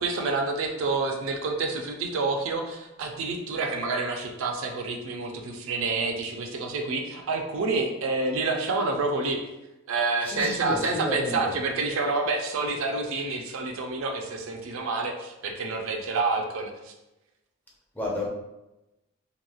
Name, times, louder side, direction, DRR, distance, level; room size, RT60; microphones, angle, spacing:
voice 1, 0.0-9.4 9.9-16.9, right 3 dB, 65° right, 3 dB, 0.4 m, -28 dB
voice 2, 10.2-11.5 17.9-18.3, left 1 dB, 10° left, -4 dB, 0.4 m, -31 dB
2.9 x 2.6 x 2.2 m, 0.96 s
head